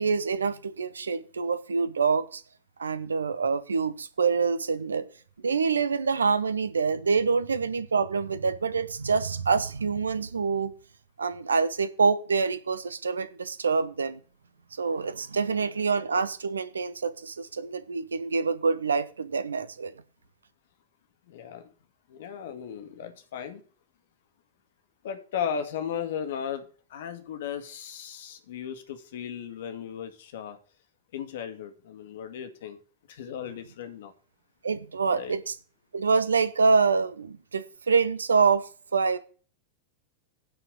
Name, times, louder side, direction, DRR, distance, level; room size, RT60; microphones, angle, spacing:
voice 1, 0.0-2.4 2.8-5.1 5.4-10.7 11.2-14.2 14.7-19.9 34.6-35.5 35.9-39.2, right 5 dB, 75° right, 1.0 m, -26 dB
voice 2, 21.3-21.7 22.1-23.6 25.0-30.6 31.1-32.8 33.1-34.1 35.1-35.3, left 8 dB, 55° left, 2.0 m, -36 dB
9.9 x 4.8 x 7.9 m
figure-of-eight pair, 90°, 0 cm